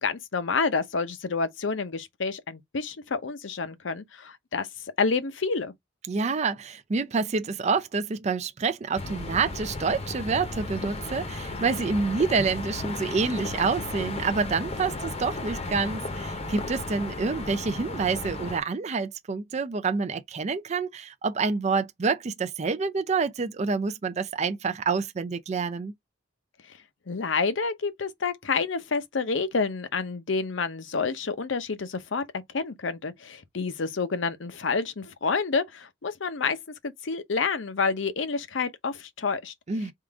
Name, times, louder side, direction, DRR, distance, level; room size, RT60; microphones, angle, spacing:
voice 1, 0.0-4.7 5.0-5.7 27.1-32.2 32.5-36.6 36.8-39.5, left 4 dB, 70° left, 0.7 m, -28 dB
voice 2, 6.1-25.9 39.7-39.9, right 4 dB, 35° right, 0.4 m, -27 dB
sound 1, 9.0-18.6, left 2 dB, 30° left, 0.8 m, -34 dB
3.7 x 2.5 x 4.6 m
head